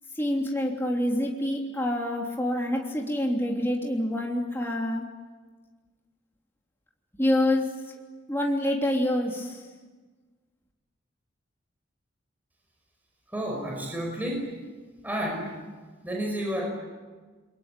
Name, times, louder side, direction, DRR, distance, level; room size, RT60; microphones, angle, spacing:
voice 1, 0.1-5.0 7.2-7.7 8.3-9.6, left 1 dB, 10° left, -1 dB, 3.2 m, -26 dB
voice 2, 13.3-14.6 15.0-15.6 16.0-16.7, equal, 10° right, 0 dB, 5.6 m, -31 dB
28.5 x 23.0 x 9.2 m, 1.4 s
head